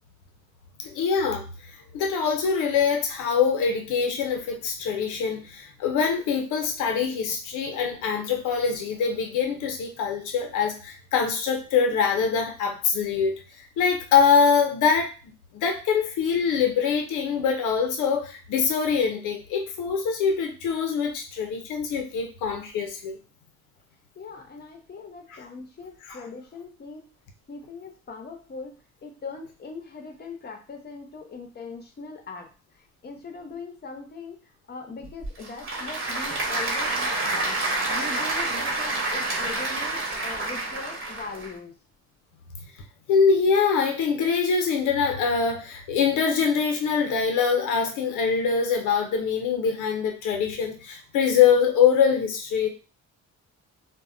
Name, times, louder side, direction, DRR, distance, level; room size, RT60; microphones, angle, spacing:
voice 1, 0.8-1.4 1.9-15.1 15.5-23.2 26.1-26.2 43.1-52.7, left 6 dB, 90° left, 3 dB, 0.6 m, -24 dB
voice 2, 24.2-27.1 27.5-28.7 29.0-41.8, left 4 dB, 35° left, 3 dB, 0.8 m, -40 dB
Applause / Crowd, 35.0-41.5, right 2 dB, 40° right, 1.1 m, -28 dB
2.2 x 2.0 x 3.7 m, 0.35 s
cardioid pair, 90°, 30 cm